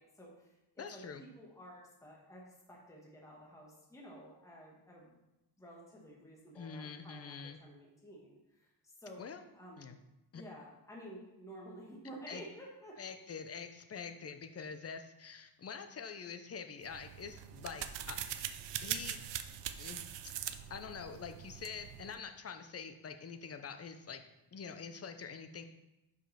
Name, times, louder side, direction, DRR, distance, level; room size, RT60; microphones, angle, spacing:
voice 1, 0.0-5.2 5.6-9.8 10.3-13.0, equal, 5° left, -3 dB, 1.3 m, -52 dB
voice 2, 0.8-1.2 6.5-7.6 9.2-9.5 9.8-10.0 10.3-10.4 12.3-12.4 13.0-18.5 18.8-19.2 19.8-24.2 24.5-25.6, left 6 dB, 35° left, 8 dB, 0.6 m, -46 dB
sound 1, 16.8-22.2, right 10 dB, 80° right, 0.6 m, -42 dB
5.5 x 5.2 x 5.6 m, 0.95 s
wide cardioid pair, 150°, 42 cm